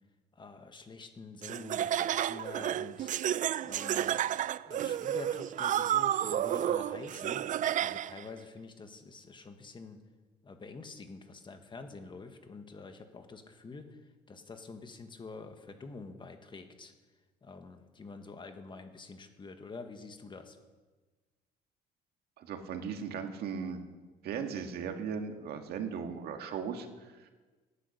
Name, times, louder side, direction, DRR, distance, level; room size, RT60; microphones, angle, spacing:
voice 1, 0.3-3.1 3.6-4.2 4.7-10.0 10.4-14.0 14.3-16.9 17.4-20.6, left 4 dB, 30° left, 7 dB, 1.6 m, -47 dB
Laughter, 1.4-8.2, right 11 dB, 50° right, 0.5 m, -31 dB
voice 2, 22.4-23.8 24.2-27.3, right 6 dB, 70° right, 5 dB, 1.9 m, -37 dB
17.5 x 10.0 x 6.7 m, 1.3 s
cardioid pair, 110°, 17 cm